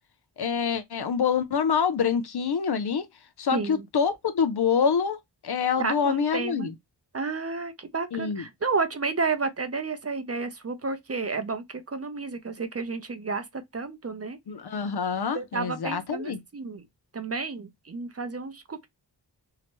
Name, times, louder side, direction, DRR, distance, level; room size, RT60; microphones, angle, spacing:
voice 1, 0.4-3.1 3.4-5.2 5.4-6.7 8.1-8.4 14.5-16.4, left 6 dB, 60° left, 0.6 m, -26 dB
voice 2, 3.5-3.9 5.8-6.7 7.1-14.4 15.3-16.8 17.1-18.9, right 4 dB, 35° right, 0.6 m, -31 dB
2.8 x 2.1 x 2.9 m
cardioid pair, 45°, 43 cm